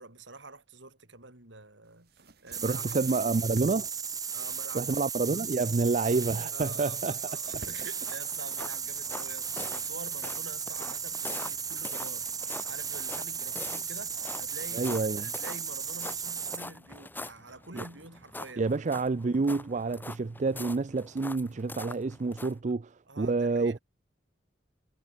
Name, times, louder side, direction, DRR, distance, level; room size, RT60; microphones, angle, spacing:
voice 1, 0.0-2.8 4.3-4.9 5.3-5.4 6.5-18.7 22.7-22.8 23.1-23.8, right 3 dB, 75° right, 5.6 m, -47 dB
sound 1, 1.9-8.3, right 2 dB, 55° right, 5.5 m, -52 dB
sound 2, 2.5-16.7, right 6 dB, 20° right, 2.2 m, -35 dB
voice 2, 2.6-3.9 4.7-7.2 14.7-15.3 17.7-17.8 18.6-23.8, right 3 dB, 40° right, 0.4 m, -28 dB
sound 3, 8.0-22.6, left 2 dB, 10° left, 3.9 m, -44 dB
head